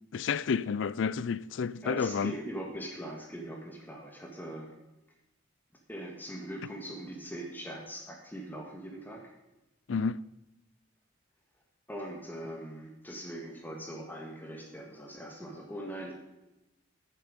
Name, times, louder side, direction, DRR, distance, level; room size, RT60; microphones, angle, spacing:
voice 1, 0.1-2.3 9.9-10.2, left 5 dB, 65° left, 0.4 m, -30 dB
voice 2, 1.8-4.7 5.9-9.3 11.9-16.1, right 1 dB, 10° left, 1.6 m, -41 dB
15.0 x 7.6 x 5.2 m
head